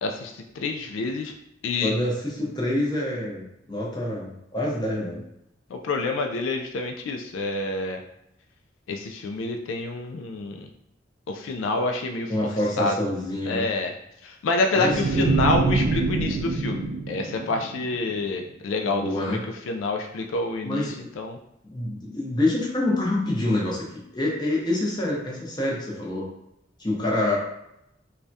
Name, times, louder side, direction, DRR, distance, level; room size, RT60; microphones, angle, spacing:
voice 1, 0.0-1.3 1.6-1.9 5.7-8.0 8.9-10.7 11.3-12.5 12.8-12.9 13.5-13.9 14.2-19.4 19.7-21.4, left 3 dB, 90° left, 3 dB, 0.3 m, -28 dB
voice 2, 1.8-5.2 12.3-13.7 14.7-15.3 18.9-19.4 20.6-21.0 21.6-26.3 26.8-27.4, left 1 dB, 25° left, -4 dB, 0.7 m, -26 dB
sound 1, 14.9-18.1, right 3 dB, 70° right, 0.4 m, -25 dB
3.4 x 2.2 x 2.6 m, 0.81 s
head